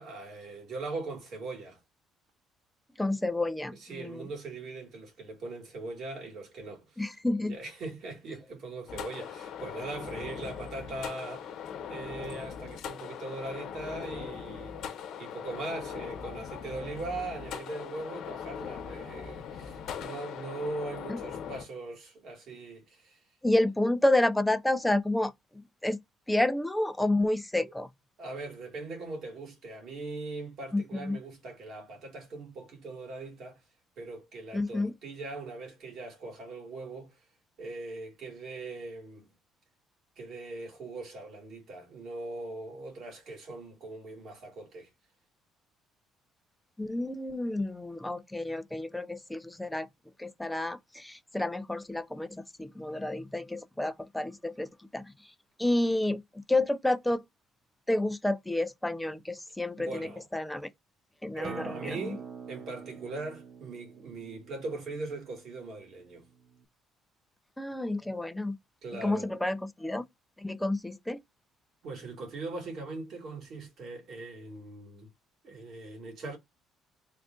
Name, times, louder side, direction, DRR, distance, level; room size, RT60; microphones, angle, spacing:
voice 1, 0.0-1.8 3.8-7.0 7.4-11.5 11.9-23.2 27.6-27.7 28.2-33.6 34.0-37.2 37.6-39.3 40.2-44.9 59.8-60.2 61.3-66.3 68.8-69.3 71.8-75.1 75.4-76.4, right 3 dB, 55° right, 2.1 m, -40 dB
voice 2, 3.0-4.3 7.0-7.5 21.1-21.2 23.4-26.0 26.3-27.9 30.7-31.2 34.5-34.9 46.8-49.9 50.2-55.1 55.6-57.2 57.9-60.7 61.2-62.0 67.6-68.6 69.0-70.0 70.4-71.2, left 1 dB, 5° left, 0.4 m, -30 dB
sound 1, 8.9-21.6, left 7 dB, 65° left, 1.1 m, -40 dB
Acoustic guitar, 61.4-66.6, right 6 dB, 35° right, 0.6 m, -46 dB
3.6 x 2.4 x 3.7 m
cardioid pair, 140°, 0 cm